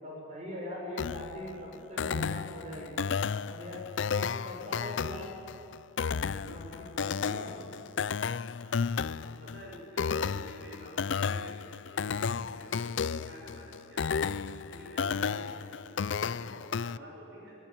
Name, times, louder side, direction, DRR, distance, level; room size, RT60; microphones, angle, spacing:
voice 1, 0.0-3.0 3.4-5.3 6.3-7.6 15.1-15.4, left 1 dB, 40° right, -3 dB, 6.8 m, -42 dB
sound 1, 1.0-17.0, left 6 dB, 85° left, 0.5 m, -33 dB
voice 2, 4.2-4.8 6.6-6.9 7.2-7.6 8.0-8.1 8.6-9.0 9.2-14.3 14.7-17.6, equal, 75° right, -2 dB, 6.9 m, -50 dB
22.5 x 22.0 x 8.8 m, 2.7 s
head